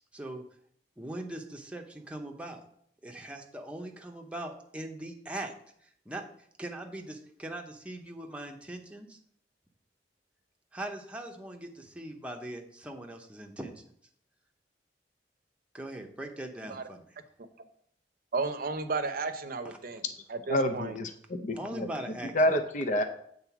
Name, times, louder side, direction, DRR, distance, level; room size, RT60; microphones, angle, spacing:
voice 1, 0.1-0.4 1.0-2.6 3.0-5.5 6.1-6.2 6.6-9.2 10.7-13.7 15.7-17.0 21.5-22.6, right 1 dB, 5° right, 2 dB, 0.8 m, -40 dB
voice 2, 18.3-20.0 20.3-21.0, right 4 dB, 55° right, 8 dB, 0.7 m, -33 dB
voice 3, 20.5-21.9 22.3-23.0, equal, 45° left, 7 dB, 0.6 m, -28 dB
7.5 x 3.9 x 6.0 m, 0.66 s
head